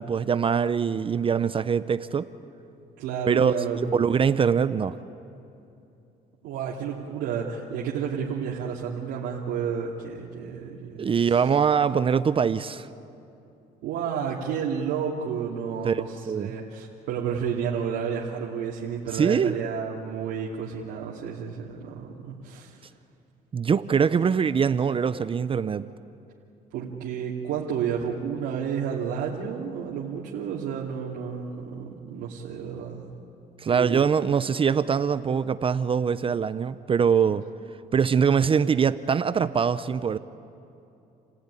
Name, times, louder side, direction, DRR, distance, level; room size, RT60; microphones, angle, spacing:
voice 1, 0.0-2.3 3.3-5.0 11.0-12.9 15.8-16.0 16.3-16.5 19.1-19.5 23.5-25.9 33.6-37.5 37.9-40.2, right 6 dB, 30° right, 0.6 m, -23 dB
voice 2, 3.0-3.8 6.4-11.4 13.8-22.8 26.7-33.1 33.7-34.0, right 7 dB, 90° right, 2.7 m, -31 dB
30.0 x 16.5 x 9.8 m
cardioid pair, 110°, 17 cm